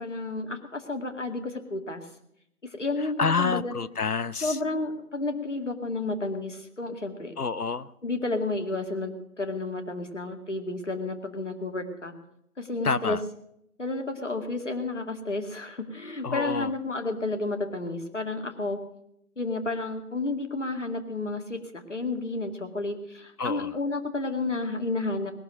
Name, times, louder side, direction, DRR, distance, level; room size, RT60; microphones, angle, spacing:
voice 1, 0.0-2.0 2.7-3.7 4.4-7.3 8.0-12.1 12.6-13.2 13.8-18.8 19.4-25.3, left 2 dB, 55° left, 5 dB, 2.2 m, -31 dB
voice 2, 3.2-4.6 7.4-7.9 12.8-13.2 16.2-16.7 23.4-23.7, left 5 dB, 80° left, 16 dB, 0.9 m, -28 dB
20.0 x 7.1 x 9.0 m, 0.78 s
figure-of-eight pair, 170°, 44 cm